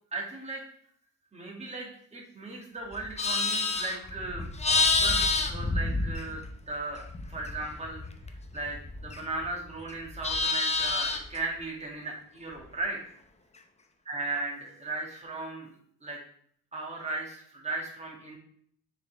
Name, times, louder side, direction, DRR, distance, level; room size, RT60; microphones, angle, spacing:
voice 1, 0.1-0.6 1.3-8.1 8.5-13.0 14.1-15.7 16.0-16.2 16.7-18.4, right 2 dB, 20° right, -1 dB, 2.1 m, -37 dB
Livestock farm animals working animals, 2.9-6.6 6.9-9.5 9.8-11.4, left 3 dB, 20° left, 0.8 m, -28 dB
6.5 x 4.5 x 3.5 m, 0.63 s
cardioid pair, 90°, 30 cm